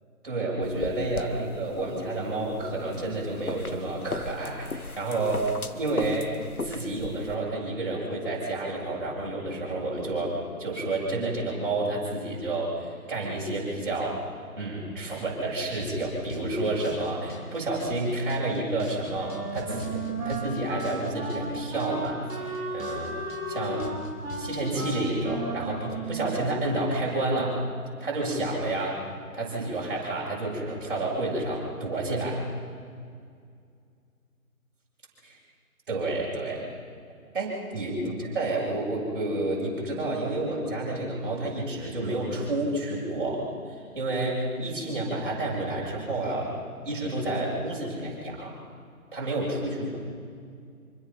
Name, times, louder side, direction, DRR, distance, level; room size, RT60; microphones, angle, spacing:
voice 1, 0.2-6.3 6.6-14.2 14.6-23.2 23.5-23.8 24.4-27.6 28.0-29.0 29.3-32.4 35.9-36.6 37.3-46.5 46.8-48.6 49.1-50.0, right 2 dB, 35° right, -4 dB, 7.7 m, -30 dB
sound 1, 0.6-7.4, left 3 dB, 80° left, 1.4 m, -37 dB
sound 2, 15.8-25.1, left 1 dB, 60° left, 4.0 m, -43 dB
Wind instrument woodwind instrument, 19.1-26.7, right 3 dB, 5° right, 1.5 m, -35 dB
27.0 x 24.5 x 5.9 m, 2.2 s
figure-of-eight pair, 155°, 44 cm